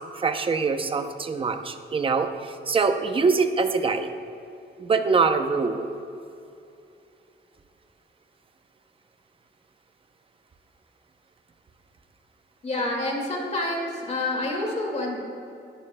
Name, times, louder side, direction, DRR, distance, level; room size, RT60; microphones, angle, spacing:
voice 1, 0.1-4.1 4.8-5.9, right 4 dB, 25° right, 7 dB, 0.6 m, -24 dB
voice 2, 12.6-15.2, left 2 dB, 35° left, -1 dB, 2.1 m, -28 dB
19.0 x 11.0 x 2.2 m, 2.6 s
wide cardioid pair, 165°, 20 cm